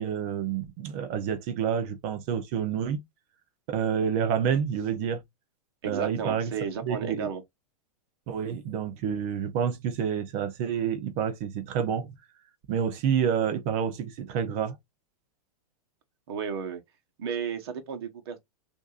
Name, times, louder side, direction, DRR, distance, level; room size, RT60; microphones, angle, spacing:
voice 1, 0.0-3.0 3.7-5.2 5.9-6.5 6.8-7.3 8.3-12.1 12.7-14.8, right 8 dB, 20° right, 0.5 m, -28 dB
voice 2, 5.8-7.4 16.3-16.8 17.2-18.4, right 7 dB, 40° right, 1.1 m, -33 dB
6.1 x 2.7 x 2.4 m
supercardioid pair, 180°, 20 cm